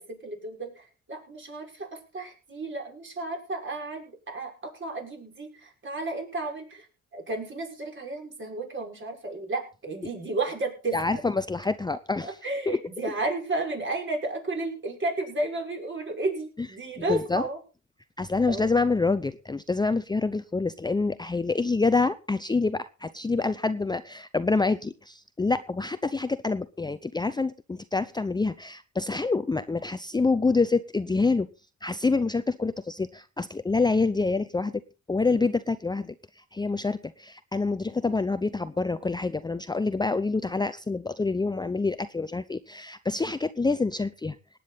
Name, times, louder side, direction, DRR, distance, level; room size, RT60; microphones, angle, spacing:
voice 1, 0.0-6.9 7.1-11.0 12.2-17.6 18.5-18.7, right 2 dB, 40° right, 2 dB, 5.9 m, -32 dB
voice 2, 10.9-12.4 12.7-12.8 17.1-17.5 18.2-31.5 31.8-34.8 35.1-44.4, left 3 dB, 15° left, 12 dB, 0.6 m, -27 dB
18.5 x 9.3 x 4.1 m, 0.32 s
cardioid pair, 90°, 30 cm